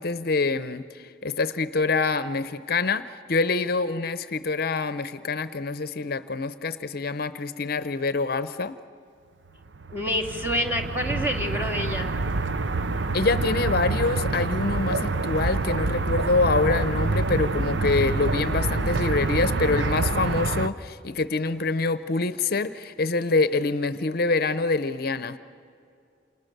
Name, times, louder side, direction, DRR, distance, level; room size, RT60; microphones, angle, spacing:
voice 1, 0.0-8.8 13.1-25.4, left 3 dB, 55° left, 13 dB, 0.7 m, -25 dB
sound 1, 9.7-20.7, right 3 dB, 80° right, 0.8 m, -27 dB
voice 2, 9.9-12.1, equal, 10° right, 1 dB, 2.3 m, -27 dB
29.0 x 28.0 x 6.7 m, 2.5 s
head